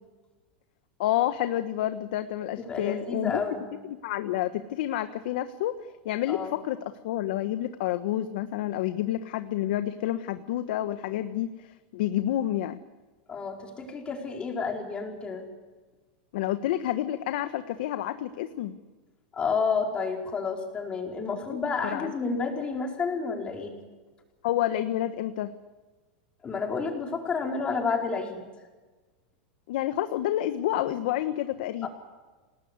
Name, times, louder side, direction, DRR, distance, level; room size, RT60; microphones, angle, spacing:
voice 1, 1.0-3.4 3.9-5.7 6.0-6.8 7.0-12.8 16.3-18.7 21.8-22.1 24.4-25.5 29.7-31.9, left 13 dB, 65° left, 10 dB, 1.3 m, -29 dB
voice 2, 2.6-3.7 6.3-6.6 13.3-15.4 19.3-23.8 26.4-28.4 31.8-31.9, left 5 dB, 20° left, 2 dB, 4.8 m, -30 dB
28.5 x 19.5 x 8.3 m, 1.3 s
supercardioid pair, 145°, 5 cm